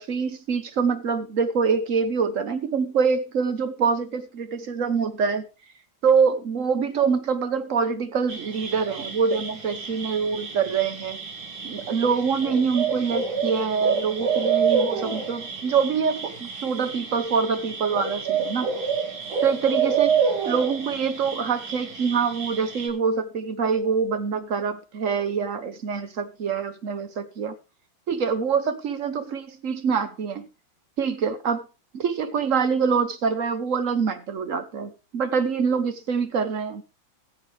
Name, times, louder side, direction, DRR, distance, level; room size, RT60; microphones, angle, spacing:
voice 1, 0.0-5.4 6.0-11.2 11.6-18.7 19.4-27.5 28.1-30.5 31.0-31.6 31.9-36.8, right 6 dB, 50° right, 1.0 m, -25 dB
sound 1, 8.3-22.9, right 6 dB, 75° right, 3.2 m, -28 dB
18.0 x 7.5 x 3.3 m
omnidirectional pair, 2.2 m